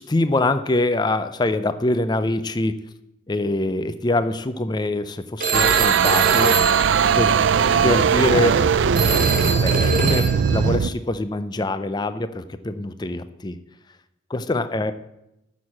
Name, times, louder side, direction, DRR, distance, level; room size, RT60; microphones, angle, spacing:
voice 1, 0.1-2.8 3.3-6.6 7.2-7.4 7.8-8.6 9.6-13.6 14.3-14.9, left 2 dB, 20° left, 12 dB, 0.4 m, -24 dB
Telephone, 5.4-7.7 8.9-10.7, right 4 dB, 45° right, 1.5 m, -25 dB
sound 1, 5.5-10.9, right 6 dB, 65° right, 0.4 m, -19 dB
9.2 x 6.4 x 7.2 m, 0.89 s
head